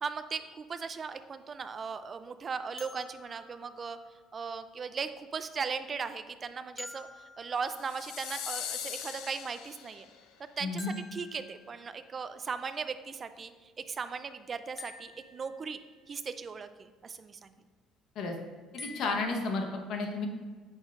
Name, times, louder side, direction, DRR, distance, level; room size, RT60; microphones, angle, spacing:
voice 1, 0.0-4.0 4.3-10.1 10.6-15.8 16.1-17.6, right 5 dB, 30° right, 11 dB, 0.4 m, -38 dB
sound 1, 2.8-4.7 6.8-8.6 10.8-12.2 14.8-16.1 18.8-19.2, left 3 dB, 30° left, 0.7 m, -49 dB
sound 2, 7.7-10.2, left 9 dB, 80° left, 0.5 m, -40 dB
voice 2, 10.6-10.9 18.1-18.4 18.7-20.3, left 3 dB, 60° left, 3 dB, 1.0 m, -32 dB
8.6 x 6.3 x 2.5 m, 1.5 s
cardioid pair, 145°, 0 cm